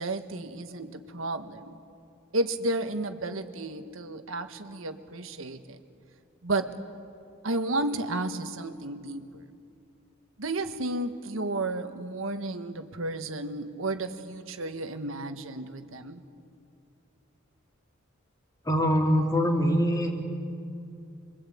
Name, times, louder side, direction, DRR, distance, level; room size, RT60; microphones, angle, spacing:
voice 1, 0.0-1.8 2.3-5.8 6.4-6.7 7.4-9.4 10.4-16.2, right 2 dB, 85° right, 8 dB, 1.5 m, -32 dB
voice 2, 18.6-20.1, equal, 20° left, 1 dB, 3.0 m, -23 dB
27.0 x 23.0 x 8.6 m, 2.5 s
head